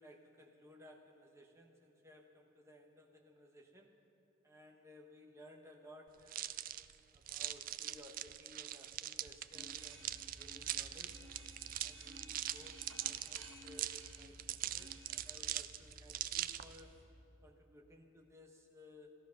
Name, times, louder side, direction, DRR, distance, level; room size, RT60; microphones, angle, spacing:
voice 1, 0.0-4.0 4.4-6.6 7.1-11.2 11.8-17.0 17.4-19.1, left 1 dB, 15° right, 1 dB, 1.2 m, -59 dB
sound 1, 6.3-16.8, right 12 dB, 45° right, 0.3 m, -42 dB
sound 2, 9.5-17.0, right 1 dB, 85° right, 2.0 m, -56 dB
14.0 x 13.5 x 5.9 m, 2.7 s
head